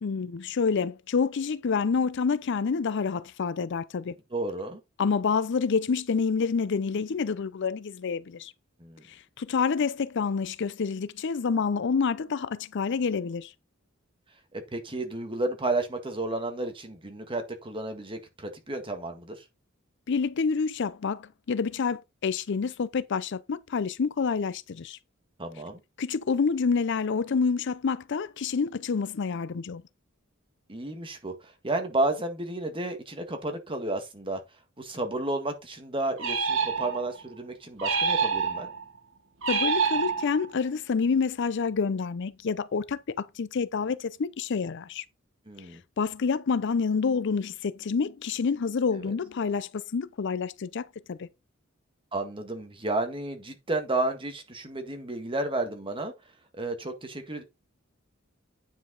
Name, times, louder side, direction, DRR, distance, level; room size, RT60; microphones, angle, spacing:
voice 1, 0.0-4.1 5.0-8.5 9.1-13.5 20.1-25.0 26.0-29.8 39.5-45.0 46.0-51.3, left 5 dB, 60° left, 0.5 m, -28 dB
voice 2, 4.3-4.8 8.8-9.0 14.5-19.4 25.4-25.8 30.7-34.4 34.8-38.7 45.5-45.8 48.9-49.1 52.1-56.1 56.5-57.4, right 2 dB, 25° right, 1.8 m, -32 dB
sound 1, 36.2-37.2 37.8-38.8 39.4-40.6, right 5 dB, 70° right, 1.6 m, -27 dB
9.3 x 5.0 x 3.9 m
head